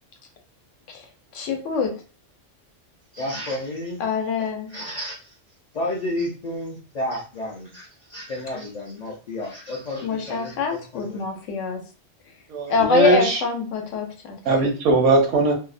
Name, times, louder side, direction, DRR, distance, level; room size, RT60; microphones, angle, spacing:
voice 1, 1.3-1.9 4.0-4.7 10.0-11.8 12.7-14.4, left 5 dB, 80° left, 3 dB, 1.0 m, -24 dB
voice 2, 3.1-4.0 4.7-5.4 5.7-11.2, left 1 dB, 55° left, -3 dB, 0.4 m, -31 dB
voice 3, 12.5-13.4 14.5-15.5, right 3 dB, 75° right, 0 dB, 0.9 m, -19 dB
2.6 x 2.0 x 2.4 m, 0.37 s
omnidirectional pair, 1.3 m